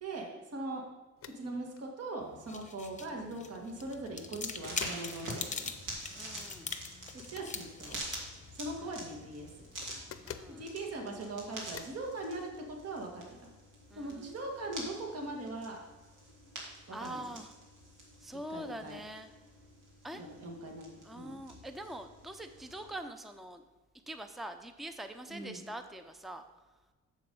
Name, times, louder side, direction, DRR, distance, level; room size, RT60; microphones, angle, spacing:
voice 1, 0.0-0.8 1.4-5.7 7.3-8.0 8.6-9.5 10.6-13.5 13.9-15.8 16.9-17.4 18.5-19.0 20.1-21.4 25.3-25.7, right 2 dB, 55° right, 2 dB, 1.7 m, -41 dB
sound 1, 1.2-1.4 1.8-1.9 3.8-4.2 4.6-5.1 7.2-7.5 9.8-10.6 11.7-12.0, left 8 dB, 50° left, 0.7 m, -46 dB
sound 2, 2.2-10.7, left 4 dB, 25° left, 0.8 m, -44 dB
sound 3, 4.6-23.0, right 1 dB, 85° right, 2.5 m, -47 dB
voice 2, 6.1-6.7 8.8-8.9 10.2-10.7 13.9-14.3 16.9-17.5 18.2-19.3 20.0-20.2 21.0-23.6 24.1-26.4, right 1 dB, ahead, 8 dB, 0.6 m, -44 dB
7.4 x 7.0 x 5.4 m, 1.2 s
cardioid pair, 90°, 30 cm